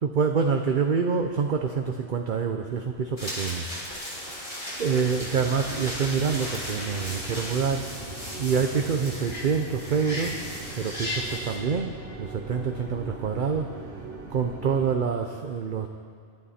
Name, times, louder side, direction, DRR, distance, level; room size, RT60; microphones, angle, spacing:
voice 1, 0.0-3.7 4.8-7.9 8.4-10.4 10.7-13.7 14.3-15.9, right 6 dB, 50° right, 4 dB, 0.8 m, -26 dB
sound 1, 3.2-11.4, equal, 30° left, 5.4 m, -36 dB
sound 2, 3.9-11.6, left 1 dB, 50° left, 2.8 m, -45 dB
sound 3, 4.9-15.0, right 2 dB, 80° right, 2.1 m, -40 dB
25.5 x 12.0 x 4.3 m, 2.2 s
omnidirectional pair, 1.2 m